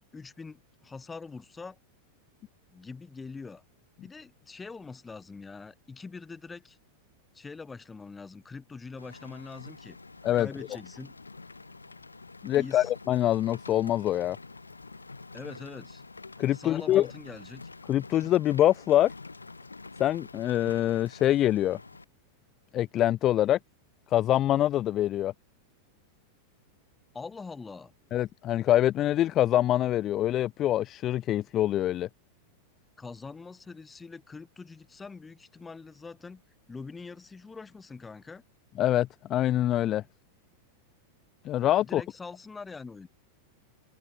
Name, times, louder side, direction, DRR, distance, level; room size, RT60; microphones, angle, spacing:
voice 1, 0.1-1.8 2.7-3.6 4.0-6.8 7.3-10.0 10.3-11.1 12.5-12.9 15.3-16.0 16.5-17.7 27.1-27.9 33.0-36.4 36.7-38.4 41.8-43.1, left 4 dB, 15° left, 2.0 m, -43 dB
Rain, 9.0-22.0, left 3 dB, 80° left, 1.6 m, -47 dB
voice 2, 12.4-14.4 16.4-17.1 17.9-19.1 20.0-21.8 22.7-23.6 24.1-25.3 28.1-32.1 38.8-40.0 41.4-42.0, left 13 dB, 30° left, 0.4 m, -25 dB
figure-of-eight pair, 90°, 0 cm